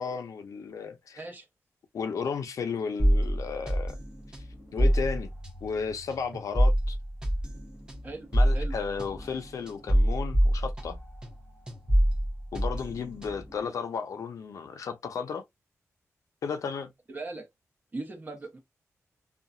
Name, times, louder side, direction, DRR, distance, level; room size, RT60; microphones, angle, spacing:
voice 1, 0.0-1.2 1.9-4.0 4.7-5.3 5.6-7.0 8.3-11.0 12.5-15.4 16.4-16.9, left 6 dB, 80° left, 0.7 m, -34 dB
voice 2, 1.2-1.5 8.0-8.7 17.1-17.5 17.9-18.6, right 2 dB, 35° right, 1.2 m, -39 dB
sound 1, 3.0-11.4 11.7-13.6, equal, 15° right, 1.0 m, -26 dB
2.8 x 2.4 x 2.6 m
wide cardioid pair, 110°, 6 cm